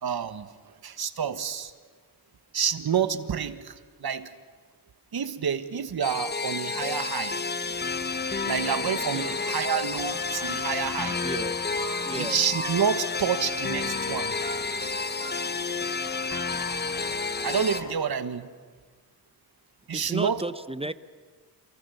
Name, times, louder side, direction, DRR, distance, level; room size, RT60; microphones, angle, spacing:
voice 1, 0.0-0.5 0.8-1.7 2.5-3.7 4.0-4.3 5.1-7.3 8.5-11.2 12.2-14.3 17.4-18.5 19.9-20.4, right 7 dB, 65° right, 11 dB, 1.4 m, -28 dB
sound 1, 6.0-17.8, left 4 dB, 25° left, 0.9 m, -30 dB
sound 2, 7.6-17.9, left 2 dB, 45° left, 5.0 m, -45 dB
sound 3, 10.0-10.4 10.7-11.5 11.8-12.3 12.5-13.1 13.3-13.9 14.4-14.9 15.2-15.3 15.6-15.7 15.9-16.0 16.3-16.4, right 2 dB, 70° left, 7.4 m, -41 dB
voice 2, 11.2-11.5 12.1-12.4 19.9-20.9, right 2 dB, 15° right, 14 dB, 0.7 m, -33 dB
28.0 x 22.0 x 7.0 m, 1.5 s
cardioid pair, 80°, 41 cm